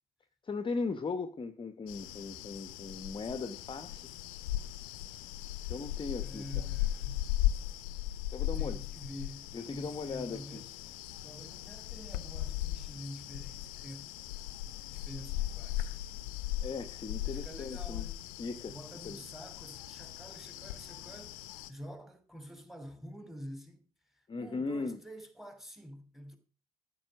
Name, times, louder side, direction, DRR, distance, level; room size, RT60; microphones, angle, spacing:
voice 1, 0.4-4.1 5.7-6.7 8.3-8.8 9.5-10.6 16.6-18.1 18.4-18.8 19.0-19.2 24.3-25.0, left 4 dB, 25° left, 1.1 m, -38 dB
sound 1, 1.9-21.7, left 14 dB, 65° left, 0.9 m, -38 dB
voice 2, 6.2-7.3 8.4-10.7 11.2-14.2 14.9-16.0 17.2-18.3 18.7-23.8 24.1-26.4, equal, ahead, 2.9 m, -48 dB
13.5 x 5.6 x 6.3 m
figure-of-eight pair, 55°, 19 cm